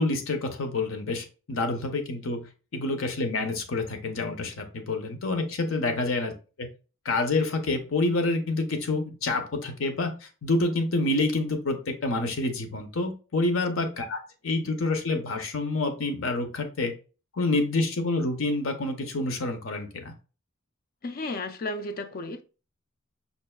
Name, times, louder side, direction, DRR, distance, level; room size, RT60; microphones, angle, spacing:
voice 1, 0.0-6.3 6.6-6.7 7.0-16.9 17.4-20.1, left 2 dB, 75° left, 0.8 m, -28 dB
voice 2, 21.0-22.4, left 2 dB, 45° left, 0.4 m, -33 dB
5.4 x 2.5 x 2.3 m
head